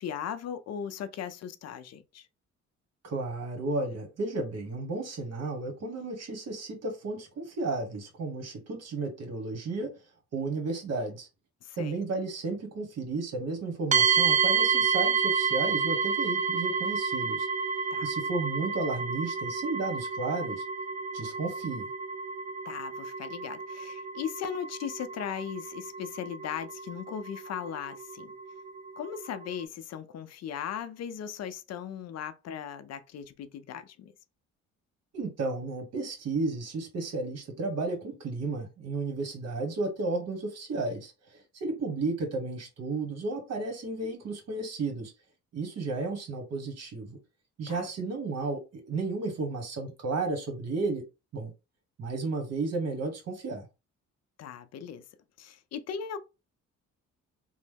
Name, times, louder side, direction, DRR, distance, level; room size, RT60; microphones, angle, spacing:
voice 1, 0.0-2.3 11.6-12.0 17.9-18.1 22.7-28.3 29.0-34.1 47.7-47.9 54.4-55.0 55.4-56.2, left 8 dB, 60° left, 0.5 m, -38 dB
voice 2, 3.0-9.9 10.3-11.3 11.8-17.5 18.0-20.6 21.1-21.9 35.1-45.1 45.5-47.2 47.6-51.0 51.3-51.5 52.0-53.6, right 3 dB, 55° right, 1.1 m, -33 dB
sound 1, 13.9-29.6, right 6 dB, 25° right, 0.4 m, -30 dB
3.0 x 2.0 x 3.3 m
cardioid pair, 90°, 30 cm